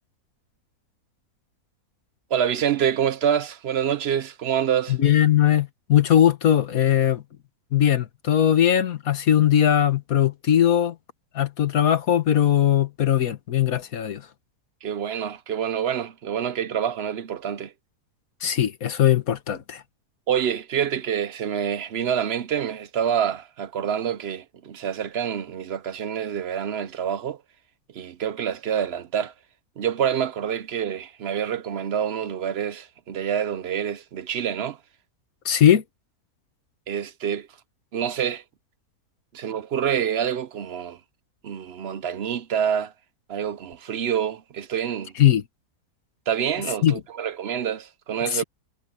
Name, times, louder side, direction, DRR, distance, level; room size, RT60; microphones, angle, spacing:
voice 1, 2.3-5.0 14.8-17.7 20.3-27.4 27.9-29.3 29.8-34.8 36.9-37.5 37.9-38.4 39.3-41.0 41.4-42.9 43.3-45.1 46.3-48.4, right 8 dB, 60° right, 0.7 m, -27 dB
voice 2, 4.9-7.2 7.7-11.0 11.4-14.2 18.4-19.8 35.5-35.8 45.2-45.4 46.8-46.9 48.3-48.4, left 10 dB, 65° left, 1.7 m, -20 dB
omnidirectional pair, 1.6 m